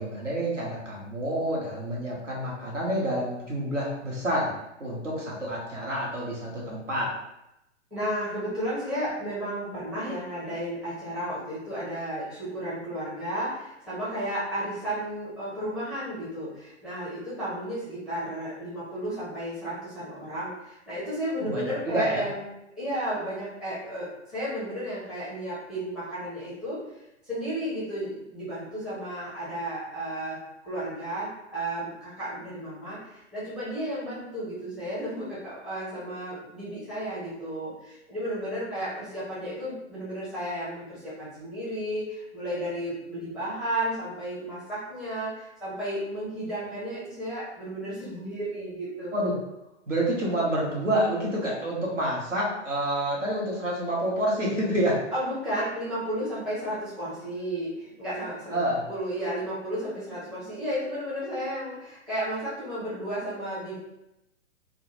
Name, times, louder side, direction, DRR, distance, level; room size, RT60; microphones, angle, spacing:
voice 1, 0.0-4.5 4.8-7.1 21.4-22.2 49.1-49.3 49.9-55.0 58.5-58.9, right 1 dB, 85° right, -4 dB, 1.0 m, -28 dB
voice 2, 7.9-22.5 22.8-26.8 27.3-30.4 30.6-49.1 55.1-63.8, right 1 dB, ahead, -10 dB, 0.5 m, -33 dB
2.2 x 2.0 x 3.0 m, 0.87 s
figure-of-eight pair, 115°, 36 cm